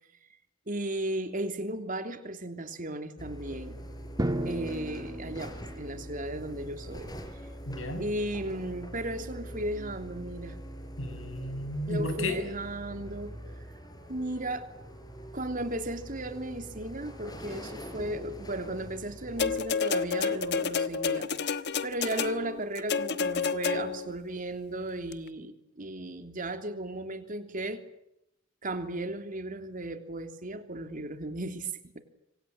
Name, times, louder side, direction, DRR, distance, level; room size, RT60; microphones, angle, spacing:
voice 1, 0.7-3.8 4.4-7.1 8.0-10.6 11.9-13.3 14.1-14.7 15.3-21.3 21.8-27.8 28.6-32.0, right 1 dB, 45° right, 7 dB, 3.1 m, -35 dB
sound 1, 3.2-19.6, equal, 20° left, 5.1 m, -43 dB
Drum, 4.2-6.1, right 1 dB, 20° right, 2.3 m, -34 dB
voice 2, 7.6-8.0 11.0-12.4, left 1 dB, 80° left, 8 dB, 6.8 m, -33 dB
sound 2, 19.4-24.1 25.1-25.2, left 5 dB, 60° left, 1.2 m, -30 dB
26.5 x 25.5 x 7.8 m, 0.82 s
head